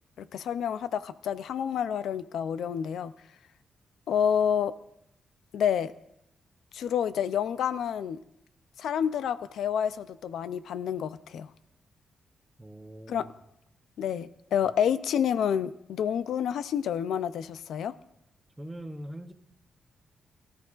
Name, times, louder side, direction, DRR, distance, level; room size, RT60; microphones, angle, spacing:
voice 1, 0.2-3.1 4.1-4.7 5.5-5.9 6.7-8.2 8.8-11.5 13.1-13.3 14.0-17.9, left 8 dB, 85° left, 14 dB, 0.4 m, -29 dB
voice 2, 12.6-13.3 14.6-14.7 18.6-19.3, right 1 dB, 10° right, 7 dB, 0.7 m, -42 dB
21.5 x 13.0 x 2.5 m, 0.79 s
wide cardioid pair, 150°, 0 cm